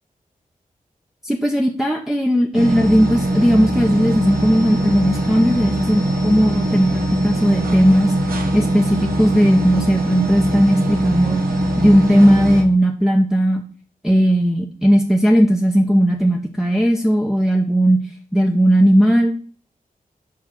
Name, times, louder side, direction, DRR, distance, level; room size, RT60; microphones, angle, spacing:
voice 1, 1.2-8.1 8.5-11.4 11.8-13.6 14.0-18.0 18.3-19.3, equal, ahead, 0 dB, 0.7 m, -16 dB
sound 1, 2.5-12.6, right 1 dB, 85° right, 1.2 m, -21 dB
5.0 x 4.7 x 5.8 m, 0.42 s
wide cardioid pair, 100°, 15 cm